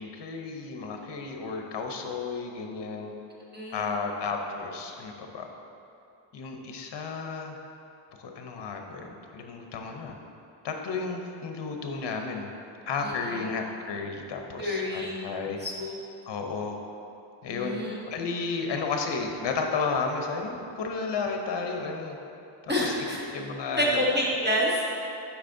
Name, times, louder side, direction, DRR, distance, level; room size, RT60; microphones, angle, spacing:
voice 1, 0.0-3.1 3.7-5.5 6.3-7.6 8.2-10.2 10.6-12.5 12.9-15.6 16.3-16.8 17.4-17.8 18.1-22.2 22.6-23.1 23.3-24.0, left 4 dB, 60° left, 3 dB, 0.8 m, -33 dB
voice 2, 3.5-3.9 13.0-13.3 14.6-15.3 15.6-15.9 17.5-18.0 22.7-23.2 23.7-24.9, equal, 20° right, -5 dB, 1.0 m, -28 dB
8.0 x 5.8 x 2.6 m, 2.7 s
wide cardioid pair, 125°, 47 cm